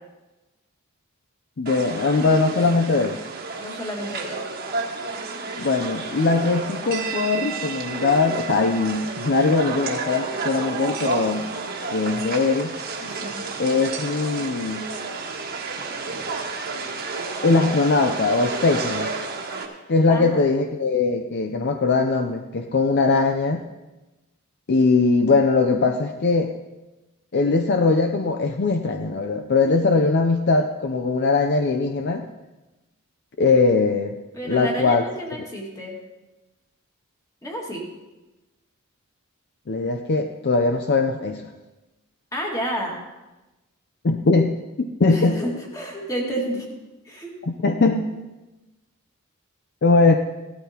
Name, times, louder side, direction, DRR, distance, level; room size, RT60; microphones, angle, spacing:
voice 1, 1.6-3.2 5.6-11.5 11.9-12.7 13.6-14.9 17.4-19.1 19.9-23.6 24.7-26.5 27.3-32.3 33.4-34.2 34.5-35.0 39.7-41.5 44.0-45.4 47.5-48.1 49.8-50.2, left 3 dB, 50° left, 6 dB, 0.5 m, -21 dB
sound 1, 1.7-19.7, right 4 dB, 45° right, 1.4 m, -31 dB
voice 2, 3.6-4.4 13.0-13.4 20.1-20.5 34.3-36.0 37.4-37.9 42.3-43.0 45.1-46.7 47.0-47.3, right 1 dB, 15° left, -1 dB, 2.0 m, -30 dB
16.5 x 12.5 x 2.9 m, 1.1 s
head